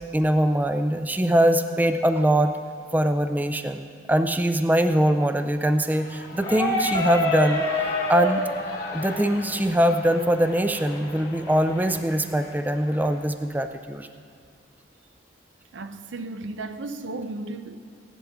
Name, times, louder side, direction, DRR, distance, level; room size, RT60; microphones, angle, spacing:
voice 1, 0.1-2.5 2.9-8.4 8.9-14.1, right 1 dB, 10° right, 0.3 m, -22 dB
Shout / Cheering, 5.6-13.3, left 3 dB, 60° left, 1.2 m, -39 dB
sound 1, 6.4-12.0, left 2 dB, 25° left, 1.1 m, -29 dB
voice 2, 15.7-17.8, right 2 dB, 90° right, 0.6 m, -34 dB
16.0 x 11.0 x 3.6 m
head